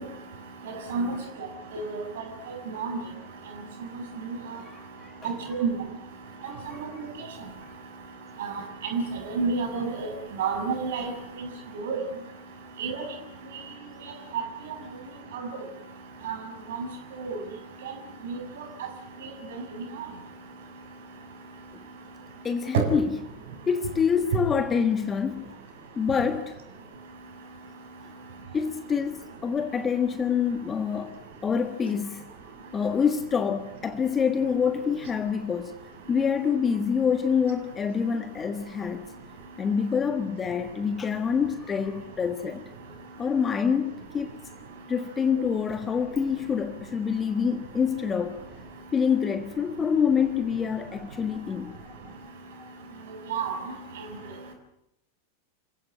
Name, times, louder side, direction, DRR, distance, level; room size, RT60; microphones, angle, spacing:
voice 1, 4.5-5.7 6.5-7.0 22.4-23.2 23.7-25.5 25.9-26.6 28.5-32.3 32.7-35.7 36.1-39.1 39.6-42.7 43.2-44.4 44.9-48.4 48.9-51.9 52.6-52.7, left 6 dB, 20° left, 1.5 m, -26 dB
voice 2, 5.2-5.7 8.4-8.5 8.9-9.0 9.3-10.1 10.4-11.1 11.8-12.0 12.8-13.0 16.2-16.3 17.2-17.3 18.3-18.4 22.7-22.8 53.3-53.6, right 5 dB, 55° right, 6.7 m, -27 dB
28.0 x 16.5 x 9.0 m
figure-of-eight pair, 90°, 0 cm